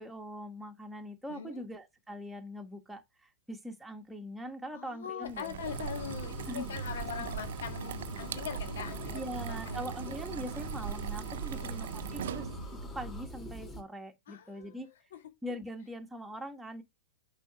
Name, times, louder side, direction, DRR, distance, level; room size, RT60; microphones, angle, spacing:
voice 1, 0.0-5.6 6.5-6.6 9.1-12.5 12.9-14.9 15.4-16.8, equal, 5° right, 1.4 m, -42 dB
voice 2, 1.3-1.6 4.7-9.3 9.6-9.9 11.5-11.8 14.3-15.2, left 8 dB, 75° left, 1.6 m, -42 dB
sound 1, 5.2-12.8, right 11 dB, 75° right, 0.5 m, -40 dB
sound 2, 5.6-13.8, equal, 20° left, 2.7 m, -42 dB
6.7 x 5.0 x 4.6 m
hypercardioid pair, 125°, 0 cm